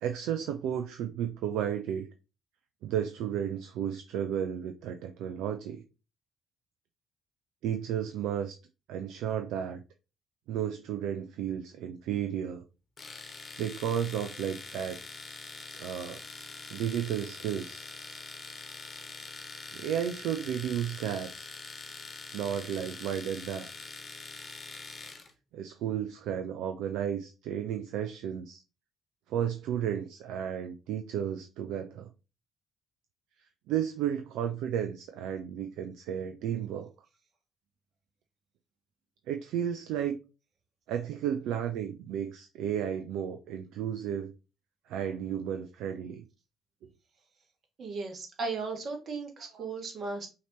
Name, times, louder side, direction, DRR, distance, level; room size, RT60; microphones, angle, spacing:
voice 1, 0.0-2.1 2.8-5.8 7.6-8.5 8.9-9.8 10.5-12.6 13.6-15.0 15.8-16.2 16.7-17.9 19.7-21.5 22.3-23.7 25.5-28.6 29.3-32.1 33.7-36.9 39.3-40.2 40.9-44.3 44.9-46.2 49.6-49.7, right 9 dB, 70° right, 0.4 m, -33 dB
Domestic sounds home sounds, 13.0-25.3, left 3 dB, 40° left, 1.1 m, -44 dB
voice 2, 47.8-50.3, right 4 dB, 50° right, 1.6 m, -36 dB
5.6 x 2.9 x 3.0 m
hypercardioid pair, 45°, 0 cm